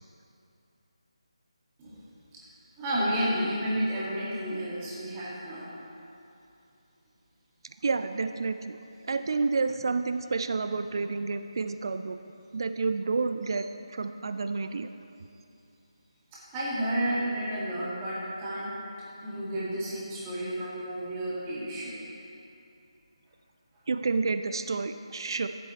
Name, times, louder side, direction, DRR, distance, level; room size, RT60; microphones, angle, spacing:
voice 1, 2.8-5.7 16.3-18.8 19.2-22.0, right 1 dB, 15° right, -8 dB, 2.1 m, -31 dB
voice 2, 7.8-8.8 9.1-12.2 12.5-14.9 23.9-25.5, right 4 dB, 45° right, 9 dB, 0.3 m, -29 dB
14.0 x 7.7 x 3.2 m, 2.7 s
figure-of-eight pair, 155°, 3 cm